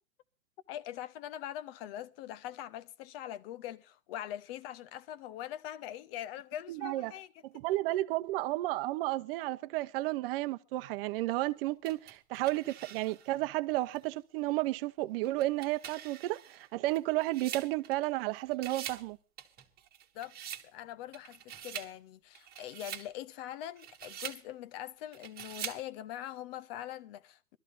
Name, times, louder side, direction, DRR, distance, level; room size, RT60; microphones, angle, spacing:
voice 1, 0.7-7.4 20.1-20.4 20.6-27.6, left 12 dB, 45° left, 1.0 m, -42 dB
voice 2, 6.7-7.1 7.5-19.2, right 18 dB, 40° right, 0.8 m, -32 dB
sound 1, 11.8-13.4 13.9-14.0 15.2-18.2 18.5-19.1 19.4-20.7 21.1-21.9 22.3-23.1 23.6-24.4 25.1-25.8, right 10 dB, 20° right, 1.6 m, -44 dB
23.5 x 13.5 x 2.6 m
hypercardioid pair, 125°, 42 cm